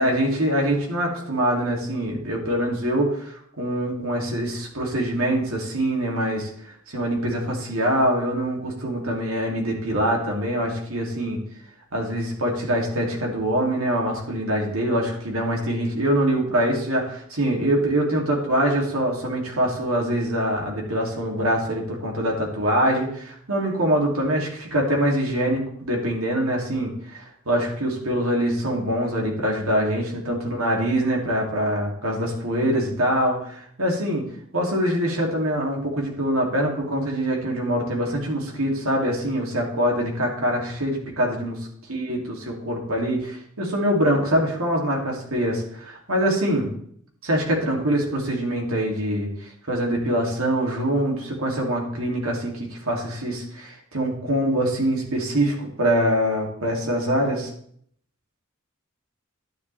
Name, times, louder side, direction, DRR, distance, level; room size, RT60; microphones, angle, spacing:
voice 1, 0.0-11.4 11.9-34.2 34.5-41.6 41.9-46.7 47.2-57.5, equal, 75° right, -1 dB, 2.9 m, -24 dB
11.5 x 10.5 x 3.5 m, 0.64 s
head